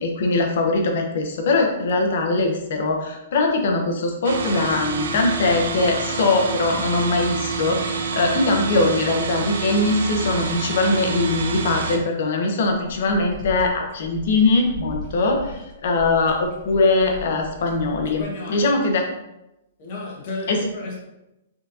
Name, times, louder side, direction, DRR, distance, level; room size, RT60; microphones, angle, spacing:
voice 1, 0.0-18.2 18.5-19.0 20.5-20.6, left 3 dB, 60° left, 1.0 m, -21 dB
sound 1, 4.2-12.0, right 4 dB, 80° right, 0.7 m, -28 dB
sound 2, 12.6-18.2, left 2 dB, 5° right, 1.6 m, -38 dB
voice 2, 18.2-18.7 19.8-21.0, left 2 dB, 40° left, 1.5 m, -32 dB
4.8 x 3.9 x 2.8 m
hypercardioid pair, 165°, 0 cm